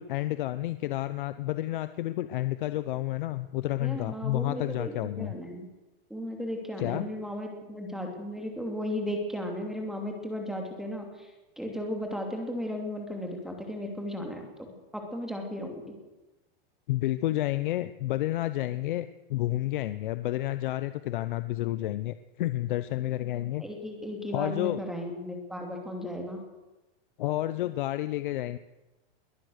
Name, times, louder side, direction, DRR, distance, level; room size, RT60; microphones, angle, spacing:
voice 1, 0.0-5.3 6.8-7.1 16.9-23.6 24.3-24.8 27.2-28.6, left 15 dB, 55° left, 13 dB, 0.8 m, -30 dB
voice 2, 3.8-5.7 6.1-11.3 11.6-14.5 14.9-15.8 23.6-26.4, left 1 dB, ahead, 2 dB, 2.7 m, -35 dB
21.5 x 18.5 x 6.5 m, 1.1 s
supercardioid pair, 175°, 30 cm